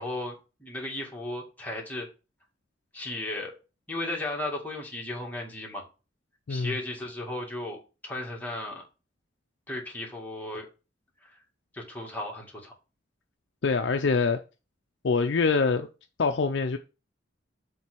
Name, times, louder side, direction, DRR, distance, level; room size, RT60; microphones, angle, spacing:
voice 1, 0.0-2.1 2.9-3.6 3.9-5.9 6.5-8.8 9.7-10.7 11.2-11.4 11.7-12.7, left 1 dB, 10° left, 2.0 m, -35 dB
voice 2, 13.6-14.4 15.0-15.9 16.2-16.8, left 4 dB, 65° left, 0.5 m, -24 dB
7.4 x 3.3 x 6.1 m
head